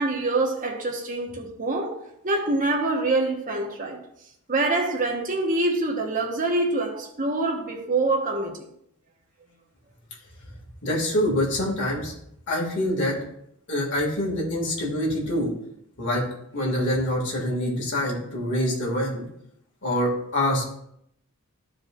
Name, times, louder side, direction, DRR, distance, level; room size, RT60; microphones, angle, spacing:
voice 1, 0.0-2.0 2.2-4.0 4.5-8.6, right 2 dB, 35° right, 1.2 m, -25 dB
voice 2, 10.8-12.1 12.5-13.1 13.7-15.5 16.0-16.2 16.5-19.2 19.8-20.7, left 1 dB, 55° left, 2.3 m, -25 dB
12.5 x 4.8 x 2.5 m
head